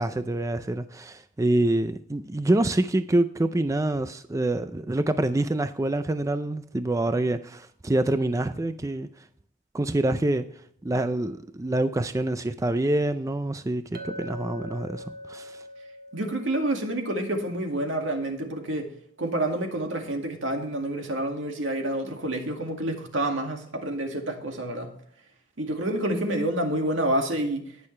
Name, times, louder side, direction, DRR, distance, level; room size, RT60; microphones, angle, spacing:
voice 1, 0.0-9.1 9.7-10.4 10.8-15.6, right 1 dB, 15° right, 0.4 m, -26 dB
Chink clink, 13.9-18.4, equal, 50° right, 1.5 m, -43 dB
voice 2, 16.1-18.9 19.2-24.9 25.6-27.6, right 1 dB, 75° right, 2.1 m, -28 dB
18.5 x 6.6 x 3.3 m
head